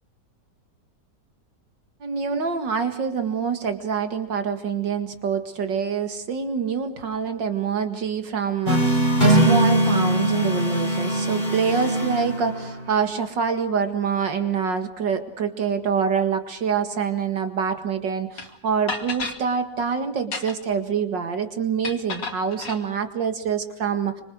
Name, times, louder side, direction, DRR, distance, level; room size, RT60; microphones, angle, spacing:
voice 1, 2.0-24.2, right 6 dB, 80° right, 8 dB, 2.6 m, -26 dB
sound 1, 8.7-12.9, right 1 dB, 25° left, 5.6 m, -21 dB
sound 2, 18.4-18.5 18.9-19.4 20.2-20.8 21.8-22.8, left 4 dB, 75° left, 3.1 m, -31 dB
26.5 x 26.0 x 6.4 m, 0.70 s
omnidirectional pair, 1.9 m